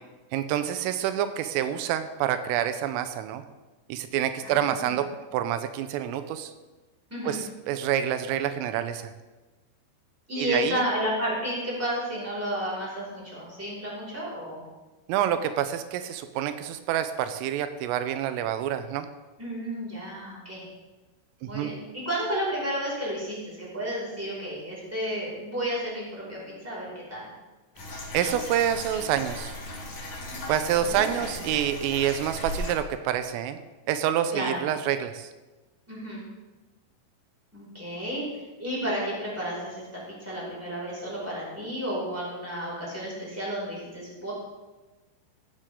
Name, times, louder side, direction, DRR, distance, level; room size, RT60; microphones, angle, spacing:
voice 1, 0.3-3.4 3.9-6.5 7.2-9.1 10.4-10.9 15.1-19.1 21.4-21.7 28.1-29.5 30.5-33.6 33.9-35.3, right 10 dB, 90° right, 10 dB, 3.3 m, -27 dB
voice 2, 4.4-5.0 7.1-7.4 10.3-14.6 19.4-20.7 21.4-26.4 26.6-27.3 30.1-30.5 30.7-31.3 34.3-34.6 35.9-36.2 37.5-38.2 38.6-44.3, equal, 5° right, -6 dB, 5.0 m, -32 dB
sound 1, 27.7-32.7, left 1 dB, 55° left, 1.5 m, -37 dB
15.0 x 13.0 x 3.8 m, 1.2 s
omnidirectional pair, 5.8 m